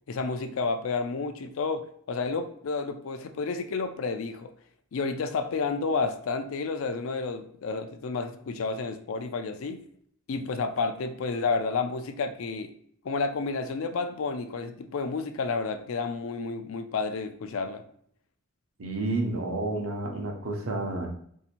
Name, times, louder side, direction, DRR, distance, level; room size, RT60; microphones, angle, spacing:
voice 1, 0.1-4.5 4.9-9.8 10.3-12.7 13.0-17.8, left 4 dB, 80° left, 9 dB, 0.4 m, -30 dB
voice 2, 18.8-21.1, right 2 dB, 90° right, 2 dB, 0.8 m, -30 dB
2.7 x 2.5 x 4.2 m, 0.64 s
head